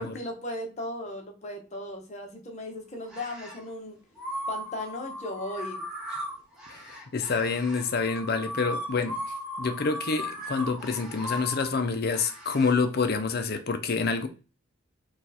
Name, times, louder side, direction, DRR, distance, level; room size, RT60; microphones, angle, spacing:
voice 1, 0.0-4.0 4.5-5.8, left 1 dB, 35° left, 1.1 m, -36 dB
sound 1, 3.0-3.6 4.2-12.8, equal, 5° right, 1.3 m, -37 dB
voice 2, 6.7-9.2 9.6-14.3, left 4 dB, 50° left, 0.6 m, -27 dB
4.5 x 2.5 x 4.1 m
head